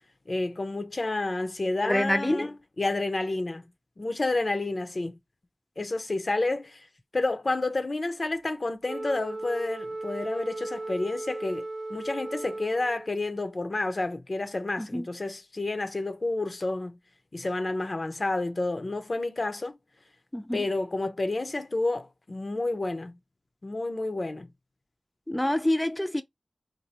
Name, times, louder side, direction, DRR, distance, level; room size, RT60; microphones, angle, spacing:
voice 1, 0.3-3.6 4.0-5.2 5.8-6.9 7.1-11.6 11.9-17.0 17.3-19.8 20.5-23.1 23.6-24.5, left 2 dB, 55° left, 0.7 m, -30 dB
voice 2, 1.8-2.5 14.8-15.1 20.3-20.6 25.3-26.2, left 1 dB, 15° left, 0.5 m, -26 dB
Wind instrument woodwind instrument, 8.8-13.2, right 2 dB, 40° right, 0.7 m, -36 dB
2.8 x 2.5 x 4.1 m
cardioid pair, 45°, 0 cm